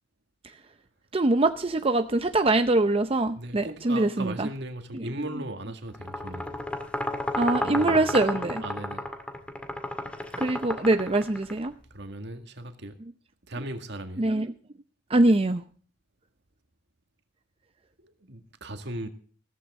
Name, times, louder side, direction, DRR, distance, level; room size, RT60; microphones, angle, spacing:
voice 1, 1.1-4.5 4.9-5.1 7.3-8.6 10.4-11.7 14.2-14.5 15.1-15.6, right 2 dB, 30° right, 0.6 m, -23 dB
voice 2, 3.4-6.5 7.6-8.1 8.6-9.0 11.9-12.9 13.5-14.3 18.0-19.1, right 1 dB, 65° right, 2.0 m, -37 dB
sound 1, 5.9-11.7, left 1 dB, 5° left, 2.1 m, -32 dB
15.0 x 14.5 x 3.6 m
head